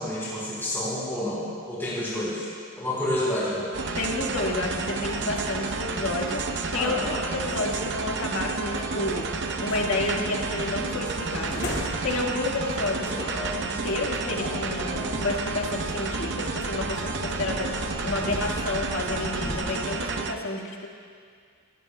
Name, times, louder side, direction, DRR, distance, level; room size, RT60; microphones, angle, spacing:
voice 1, 0.0-2.5 2.8-3.7 6.7-7.2 13.0-13.5, left 1 dB, 10° left, -9 dB, 4.0 m, -29 dB
sound 1, 3.7-20.3, right 3 dB, 55° right, 0.7 m, -31 dB
voice 2, 3.9-6.4 6.7-9.3 9.6-11.6 12.0-13.1 13.6-17.7 18.0-20.9, left 2 dB, 75° left, -1 dB, 1.8 m, -30 dB
sound 2, 5.8-19.6, left 1 dB, 55° left, 2.2 m, -39 dB
21.0 x 17.5 x 2.3 m, 2.1 s
head